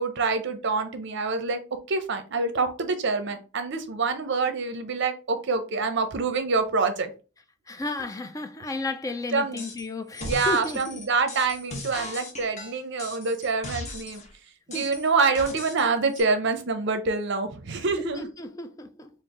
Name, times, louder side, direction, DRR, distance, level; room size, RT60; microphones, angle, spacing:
voice 1, 0.0-1.6 1.9-7.1 9.3-9.6 10.2-14.2 14.7-18.2, right 4 dB, 60° right, 0.6 m, -26 dB
voice 2, 7.7-11.0 12.0-12.1 14.7-14.9 18.0-19.1, left 2 dB, 15° left, 0.4 m, -33 dB
sound 1, 9.6-9.9 10.1-14.3 14.7-15.9 16.1-16.2, left 2 dB, 35° left, 0.9 m, -38 dB
4.4 x 2.0 x 3.6 m
head